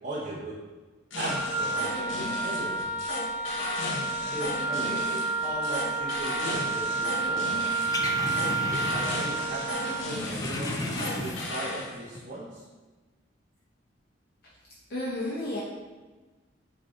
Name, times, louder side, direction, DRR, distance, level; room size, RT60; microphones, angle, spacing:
voice 1, 0.0-0.6 1.1-2.8 4.3-7.5 8.6-12.7, right 1 dB, 45° right, -7 dB, 0.7 m, -38 dB
sound 1, 1.1-11.9, left 1 dB, 85° left, 0.9 m, -35 dB
Wind instrument woodwind instrument, 1.3-10.1, right 3 dB, 80° right, 1.5 m, -30 dB
sound 2, 7.5-9.5 9.7-11.7 12.1-12.2, left 2 dB, 20° left, 0.3 m, -34 dB
voice 2, 14.9-15.6, left 1 dB, 55° left, -7 dB, 0.7 m, -31 dB
4.8 x 2.6 x 3.6 m, 1.3 s
head